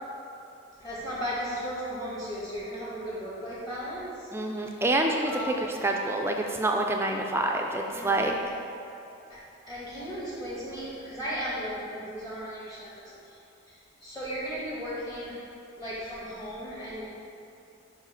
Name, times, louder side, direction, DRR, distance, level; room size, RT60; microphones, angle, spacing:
voice 1, 0.8-4.8 5.2-5.8 7.9-8.4 9.3-9.4 9.7-13.1 13.7-15.4 15.8-17.0, equal, 20° left, -8 dB, 1.5 m, -36 dB
voice 2, 4.3-8.3, right 2 dB, 10° right, 2 dB, 0.4 m, -27 dB
5.1 x 4.8 x 5.7 m, 2.8 s
head